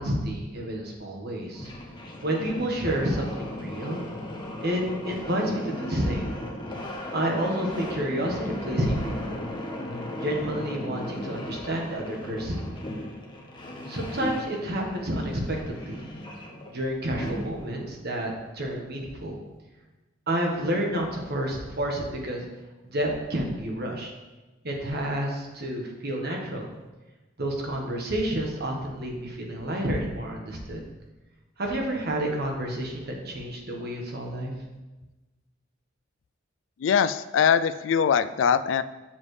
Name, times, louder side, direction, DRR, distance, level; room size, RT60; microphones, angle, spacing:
voice 1, 0.0-1.7 2.2-4.0 4.6-6.3 7.1-9.5 10.2-12.6 13.9-16.1 16.7-19.3 20.3-22.4 22.8-24.1 24.6-26.7 27.4-30.8 31.6-34.5, right 1 dB, 55° right, 0 dB, 1.4 m, -29 dB
sound 1, 1.4-17.8, left 1 dB, 25° left, 1.1 m, -37 dB
voice 2, 36.8-38.8, left 7 dB, 70° left, 13 dB, 0.3 m, -22 dB
7.3 x 6.9 x 3.3 m, 1.1 s
head